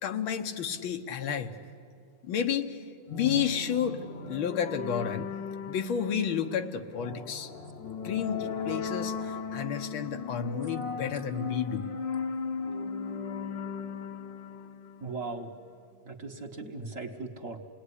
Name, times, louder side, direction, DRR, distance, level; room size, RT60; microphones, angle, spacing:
voice 1, 0.0-1.5 2.2-2.8 3.1-4.0 4.3-5.3 5.7-7.5 8.0-11.9, left 8 dB, 85° left, 7 dB, 1.9 m, -31 dB
sound 1, 3.1-15.6, left 5 dB, 45° left, 1.0 m, -37 dB
voice 2, 15.0-15.5 16.0-17.6, right 3 dB, 45° right, 3 dB, 1.6 m, -38 dB
28.0 x 19.0 x 9.9 m, 2.4 s
omnidirectional pair, 2.1 m